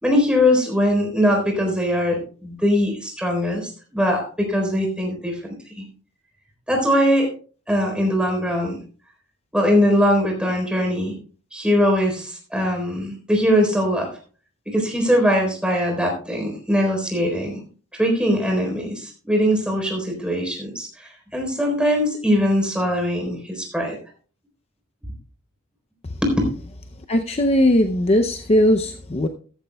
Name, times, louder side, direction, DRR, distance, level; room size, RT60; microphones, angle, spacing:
voice 1, 0.0-5.4 5.8-5.9 6.7-7.3 7.7-8.8 9.5-11.1 11.5-14.1 14.7-17.6 17.9-24.0 26.2-26.4, equal, 5° right, 3.9 m, -21 dB
voice 2, 27.1-29.3, left 1 dB, 30° left, 0.6 m, -18 dB
14.5 x 13.5 x 2.3 m
head